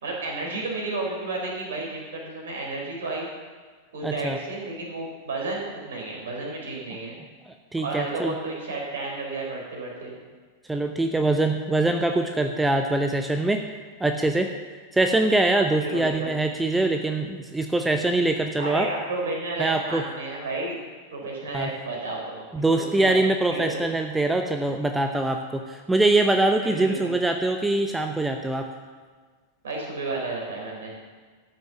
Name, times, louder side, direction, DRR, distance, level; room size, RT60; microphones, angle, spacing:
voice 1, 0.0-3.3 3.9-7.1 7.8-10.2 15.7-16.3 18.6-20.8 21.1-23.2 23.5-23.9 26.6-27.1 29.6-30.9, right 2 dB, 65° right, -1 dB, 3.9 m, -32 dB
voice 2, 4.0-4.4 7.5-8.3 10.7-13.6 14.0-14.5 14.9-18.9 19.6-20.0 21.5-21.7 22.5-28.7, right 2 dB, 5° right, 5 dB, 0.7 m, -23 dB
13.5 x 6.4 x 6.9 m, 1.5 s
figure-of-eight pair, 90°, 0 cm